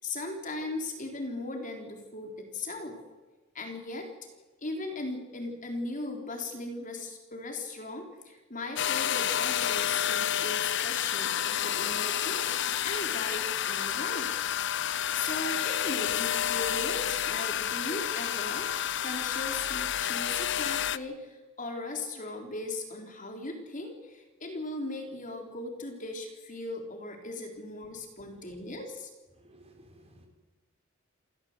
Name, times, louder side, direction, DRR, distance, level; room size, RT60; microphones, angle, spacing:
voice 1, 0.0-3.0 3.5-4.1 4.6-14.3 14.8-18.7 19.0-29.1, left 2 dB, 40° left, 3 dB, 3.9 m, -38 dB
sound 1, 8.8-21.0, left 10 dB, 60° left, 0.7 m, -30 dB
voice 2, 29.4-30.3, right 1 dB, 30° right, 3 dB, 5.0 m, -56 dB
28.5 x 15.0 x 8.1 m, 1.2 s
head